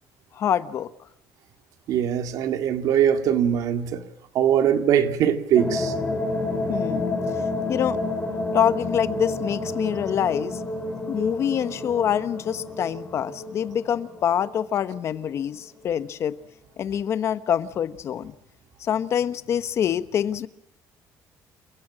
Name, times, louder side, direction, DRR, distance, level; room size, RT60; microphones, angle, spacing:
voice 1, 0.3-0.9 6.7-7.2 7.7-8.0 8.5-10.6 11.1-16.4 16.8-18.3 18.8-20.5, left 9 dB, 45° left, 1.0 m, -25 dB
voice 2, 1.9-4.0 4.3-5.9, right 9 dB, 65° right, 2.1 m, -21 dB
sound 1, 5.6-15.0, left 2 dB, 15° left, 3.6 m, -30 dB
28.5 x 16.0 x 7.5 m
cardioid pair, 155°, 7 cm